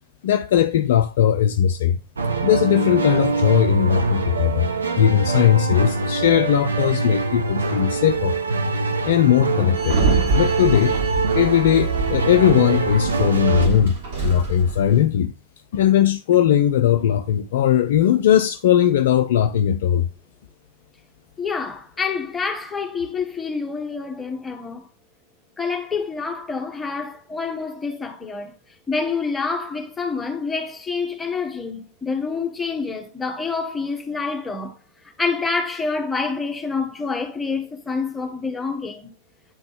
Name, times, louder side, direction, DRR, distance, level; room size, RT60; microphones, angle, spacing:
voice 1, 0.2-2.0 2.4-4.7 5.0-8.4 9.0-10.0 10.3-11.0 11.3-15.3 15.7-20.1, left 10 dB, 55° left, 0.4 m, -18 dB
sound 1, 2.2-13.7, right 4 dB, 75° right, 0.8 m, -24 dB
Sliding door, 9.8-15.0, right 4 dB, 55° right, 3.3 m, -25 dB
voice 2, 21.4-24.9 25.6-28.6 28.9-34.8 35.2-39.1, left 4 dB, 15° left, 1.2 m, -27 dB
8.5 x 3.9 x 3.5 m
figure-of-eight pair, 90°, 0 cm